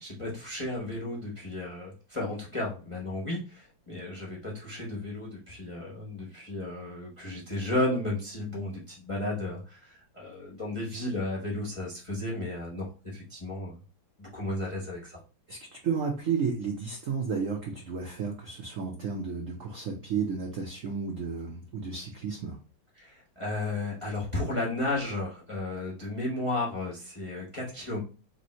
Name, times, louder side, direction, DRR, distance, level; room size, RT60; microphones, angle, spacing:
voice 1, 0.0-13.8 14.2-15.2 22.9-28.0, left 2 dB, 30° left, -3 dB, 0.5 m, -33 dB
voice 2, 15.8-22.6, right 5 dB, 75° right, 0 dB, 0.7 m, -32 dB
3.5 x 2.7 x 4.2 m, 0.33 s
omnidirectional pair, 2.3 m